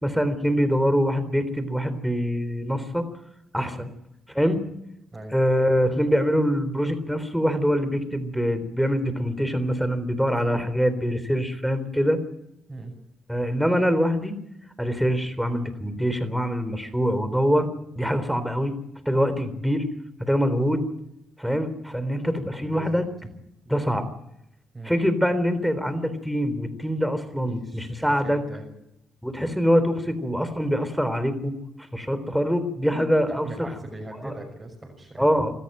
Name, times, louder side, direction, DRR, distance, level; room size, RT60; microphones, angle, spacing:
voice 1, 0.0-3.1 3.5-3.9 4.4-4.6 5.3-12.2 13.3-14.3 14.8-17.7 18.0-18.7 19.1-19.9 20.2-20.9 21.4-23.1 23.7-24.1 24.8-28.4 29.2-31.6 31.9-33.7 34.2-34.3 35.2-35.5, equal, ahead, 11 dB, 3.6 m, -24 dB
voice 2, 22.5-23.0 24.7-24.9 27.4-28.7 33.3-35.3, right 2 dB, 20° right, -1 dB, 6.1 m, -40 dB
25.5 x 13.5 x 9.2 m, 0.84 s
cardioid pair, 90°, 0 cm